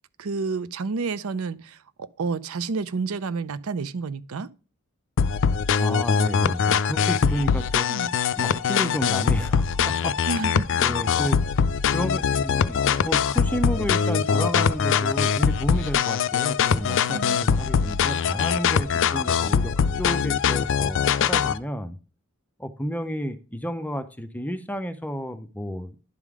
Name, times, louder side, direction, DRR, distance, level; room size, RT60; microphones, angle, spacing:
voice 1, 0.2-4.5 7.9-8.1 10.3-10.8 17.1-17.4, right 4 dB, 65° right, 0.5 m, -30 dB
sound 1, 5.2-21.6, left 6 dB, 60° left, 0.4 m, -22 dB
voice 2, 5.8-7.9 8.4-10.5 10.8-11.4 11.9-22.0 22.6-26.0, equal, 5° left, 0.6 m, -31 dB
11.0 x 3.7 x 4.8 m
head